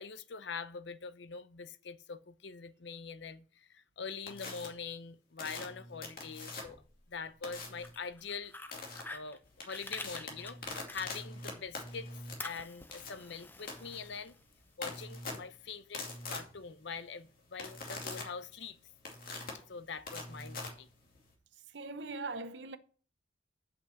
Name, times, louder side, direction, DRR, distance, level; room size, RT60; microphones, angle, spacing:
voice 1, 0.0-6.8 7.1-8.5 9.1-12.1 12.4-14.3 14.8-18.8 19.7-20.9, left 5 dB, 65° left, 0.6 m, -44 dB
sound 1, 4.3-4.7 5.4-6.9 7.4-7.9 8.7-9.0 9.4-21.3, left 3 dB, 45° left, 2.4 m, -44 dB
Fire, 7.8-11.6 11.9-14.7, left 2 dB, 10° left, 0.6 m, -47 dB
voice 2, 21.7-22.8, right 3 dB, 60° right, 0.8 m, -41 dB
8.3 x 6.1 x 6.2 m
head